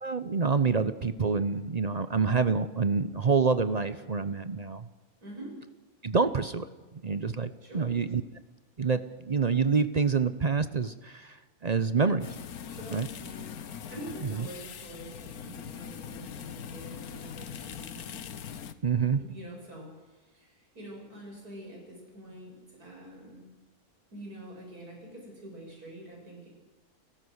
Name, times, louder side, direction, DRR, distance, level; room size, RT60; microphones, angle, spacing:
voice 1, 0.0-4.9 6.0-6.7 7.0-8.2 8.8-11.4 11.6-12.3 12.9-13.1 18.8-19.2, right 5 dB, 40° right, 12 dB, 0.6 m, -27 dB
voice 2, 5.2-5.5 7.6-8.0 12.7-13.5 13.9-18.0 19.2-23.5 24.1-26.5, right 1 dB, 75° right, -1 dB, 7.6 m, -45 dB
sound 1, 12.2-18.7, left 8 dB, 75° left, 1.5 m, -42 dB
30.0 x 15.0 x 6.4 m, 1.2 s
omnidirectional pair, 1.6 m